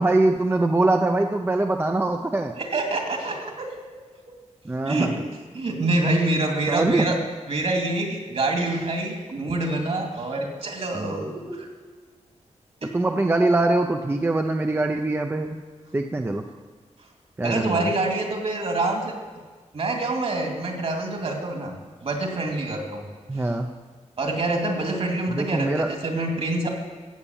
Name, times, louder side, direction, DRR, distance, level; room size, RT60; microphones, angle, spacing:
voice 1, 0.0-2.5 4.6-5.1 6.7-7.2 10.9-11.2 12.9-15.6 15.9-16.4 17.4-17.9 23.3-23.7 25.3-25.9, right 2 dB, 20° right, 4 dB, 0.6 m, -23 dB
voice 2, 2.6-3.7 4.9-5.2 5.5-7.2 7.5-11.7 12.8-12.9 17.4-19.1 19.7-21.7 22.0-23.0 23.4-23.5 24.2-26.7, right 2 dB, 55° right, 2 dB, 2.4 m, -26 dB
15.5 x 8.6 x 7.2 m, 1.5 s
wide cardioid pair, 170°, 12 cm